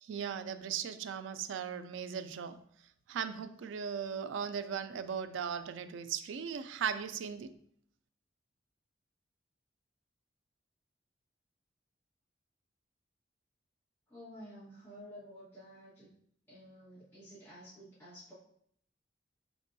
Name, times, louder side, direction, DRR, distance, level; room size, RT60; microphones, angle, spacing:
voice 1, 0.0-2.6 3.1-7.5, right 7 dB, 90° right, 11 dB, 0.3 m, -38 dB
voice 2, 14.1-16.1 16.5-18.3, equal, 15° left, -12 dB, 1.3 m, -51 dB
5.2 x 3.4 x 2.6 m, 0.66 s
head